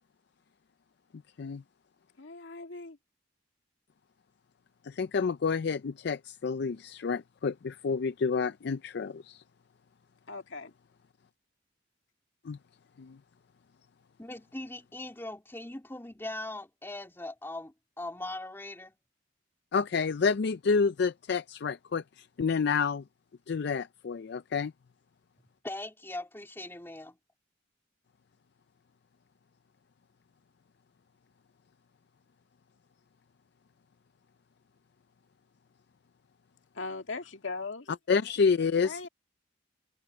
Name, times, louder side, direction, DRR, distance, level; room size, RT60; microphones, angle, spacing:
voice 1, 2.2-3.0 10.3-10.8 36.7-37.9 38.8-39.1, left 3 dB, 90° left, 1.9 m, -39 dB
voice 2, 4.8-9.4 12.4-12.6 13.0-13.2 19.7-23.0 23.5-24.7 38.1-39.0, left 5 dB, 60° left, 0.4 m, -29 dB
voice 3, 14.2-18.9 25.6-27.2, left 2 dB, 15° left, 3.0 m, -40 dB
open air
head